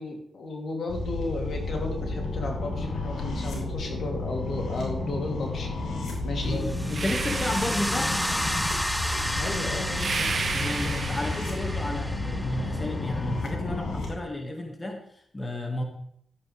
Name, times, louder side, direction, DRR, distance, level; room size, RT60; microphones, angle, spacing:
voice 1, 0.0-5.7 6.2-6.6 7.3-7.4 9.4-10.9, left 2 dB, 70° left, 1 dB, 2.7 m, -34 dB
sound 1, 0.9-14.1, left 2 dB, 85° left, 3.5 m, -32 dB
voice 2, 6.4-8.2 10.5-15.8, left 1 dB, 25° left, 2 dB, 1.9 m, -32 dB
sound 2, 6.6-13.5, equal, ahead, 0.4 m, -32 dB
sound 3, 6.9-8.6 9.9-12.0, right 5 dB, 60° right, 1.0 m, -33 dB
13.5 x 8.7 x 3.4 m, 0.69 s
cardioid pair, 65°, 0 cm